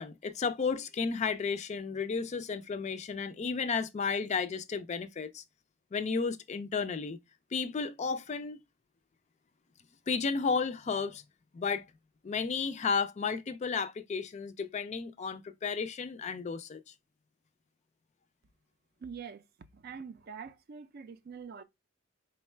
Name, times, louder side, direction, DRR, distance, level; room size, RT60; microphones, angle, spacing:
voice 1, 0.0-5.4 5.9-7.2 7.5-8.6 10.1-11.2 11.5-11.8 12.2-16.8, left 5 dB, 35° left, 0.3 m, -33 dB
voice 2, 19.0-19.4 19.7-21.6, right 6 dB, 50° right, 0.4 m, -44 dB
3.8 x 2.1 x 4.3 m
head